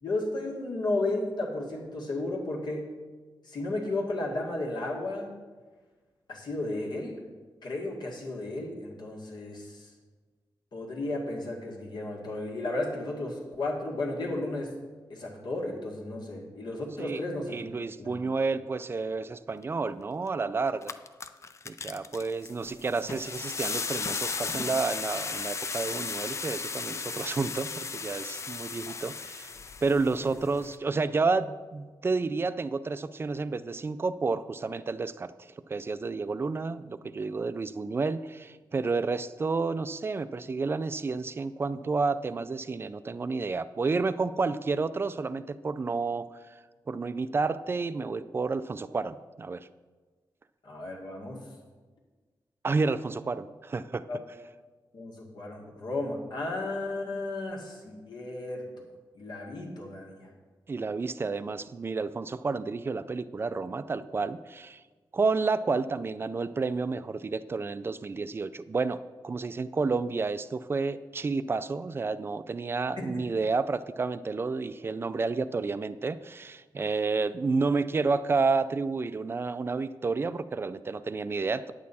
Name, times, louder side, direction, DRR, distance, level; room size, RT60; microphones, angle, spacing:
voice 1, 0.0-2.9 3.4-5.3 6.3-7.2 7.6-9.9 10.7-14.7 15.1-17.7 18.0-18.2 50.6-51.4 54.1-54.2 54.9-58.8 59.2-60.3 73.0-73.2, left 2 dB, 65° left, -1 dB, 1.9 m, -34 dB
voice 2, 17.5-21.0 21.7-29.5 29.8-46.4 46.9-49.7 52.6-54.0 60.7-64.8 65.1-69.0 69.2-81.7, right 4 dB, 30° right, 13 dB, 0.3 m, -30 dB
sound 1, 20.3-20.4 20.7-30.8, left 4 dB, 35° left, 0.4 m, -35 dB
9.5 x 8.4 x 4.2 m, 1.4 s
wide cardioid pair, 160°, 8 cm